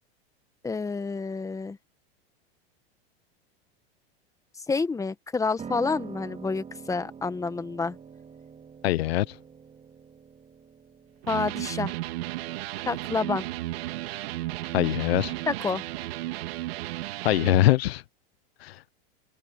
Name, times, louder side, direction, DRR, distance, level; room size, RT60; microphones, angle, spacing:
voice 1, 0.6-1.8 4.7-8.0 11.3-11.9 12.9-13.4 15.5-15.8, left 4 dB, 10° left, 1.3 m, -28 dB
Piano, 5.6-15.5, right 6 dB, 20° right, 3.8 m, -46 dB
voice 2, 8.8-9.3 14.7-15.3 17.2-18.0 18.6-18.8, left 16 dB, 80° left, 1.0 m, -23 dB
Electric guitar, 11.2-17.7, right 17 dB, 75° right, 3.1 m, -34 dB
open air
supercardioid pair, 125°, 30 cm